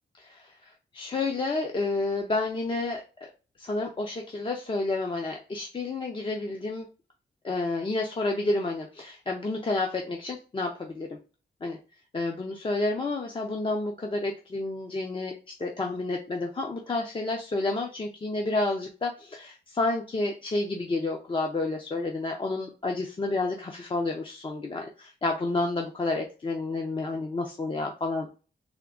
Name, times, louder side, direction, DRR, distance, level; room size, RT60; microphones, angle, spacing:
voice 1, 0.2-3.0 3.6-6.9 7.4-11.1 11.6-11.8 12.1-28.3, left 2 dB, 30° left, 1 dB, 0.6 m, -30 dB
3.5 x 3.4 x 3.7 m, 0.34 s
wide cardioid pair, 165°, 18 cm